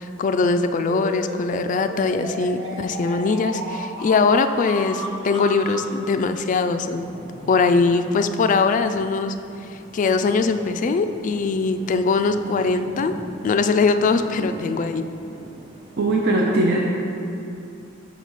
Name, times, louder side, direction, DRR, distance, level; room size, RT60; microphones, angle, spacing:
voice 1, 0.0-7.1 7.5-9.3 9.9-13.1 13.4-15.0, left 4 dB, 40° left, 9 dB, 0.3 m, -21 dB
sound 1, 0.9-5.9, right 1 dB, 80° right, 1.1 m, -33 dB
sound 2, 7.0-16.3, right 1 dB, 30° right, 0.8 m, -42 dB
voice 2, 16.0-16.8, right 2 dB, 60° right, -2 dB, 0.5 m, -19 dB
6.3 x 4.1 x 6.1 m, 2.6 s
head